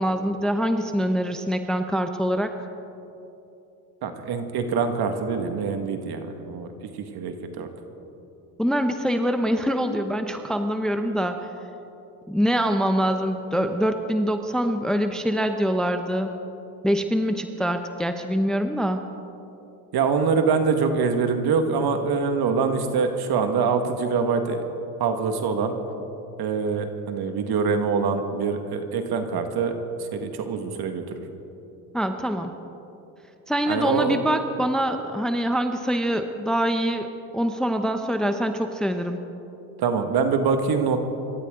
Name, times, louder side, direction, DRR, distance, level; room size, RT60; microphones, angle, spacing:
voice 1, 0.0-2.5 8.6-11.5 12.3-16.3 16.8-19.0 31.9-32.5 33.5-37.1 37.3-39.2, equal, ahead, 7 dB, 0.9 m, -24 dB
voice 2, 4.0-6.7 7.1-7.7 19.9-24.6 25.0-25.8 26.4-29.7 30.1-31.0 33.7-34.2 39.8-41.0, right 5 dB, 50° right, 6 dB, 2.0 m, -24 dB
26.0 x 13.5 x 3.9 m, 2.9 s
hypercardioid pair, 80°, 48 cm